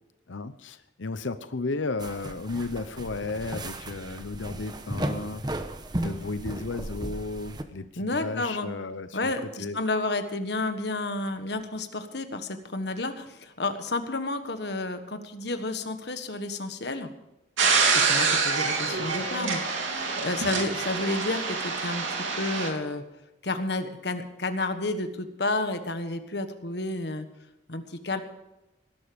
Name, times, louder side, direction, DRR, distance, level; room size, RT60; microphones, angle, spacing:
voice 1, 0.3-5.4 6.0-9.3 9.6-9.8, left 3 dB, 85° left, 12 dB, 0.8 m, -34 dB
sound 1, 2.0-7.6, right 1 dB, 20° right, 1.0 m, -35 dB
voice 2, 8.0-8.7 9.1-17.1 17.9-22.0 22.4-23.0 23.4-27.3 27.7-28.2, left 2 dB, 60° left, 8 dB, 1.5 m, -31 dB
sound 2, 17.6-22.7, right 4 dB, 85° right, 3.1 m, -26 dB
19.0 x 11.5 x 5.2 m, 0.96 s
head